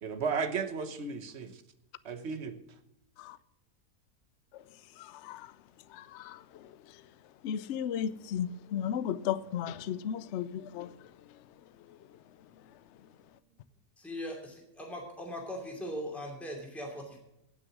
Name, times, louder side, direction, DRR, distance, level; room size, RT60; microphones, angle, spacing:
voice 1, 0.0-1.6 2.0-2.6, right 5 dB, 50° right, 9 dB, 1.3 m, -34 dB
voice 2, 5.0-5.5 5.9-6.7 7.4-10.9, left 9 dB, 65° left, 16 dB, 0.7 m, -35 dB
voice 3, 14.0-17.2, equal, ahead, 0 dB, 2.6 m, -40 dB
17.0 x 6.2 x 6.1 m, 0.85 s
omnidirectional pair, 1.6 m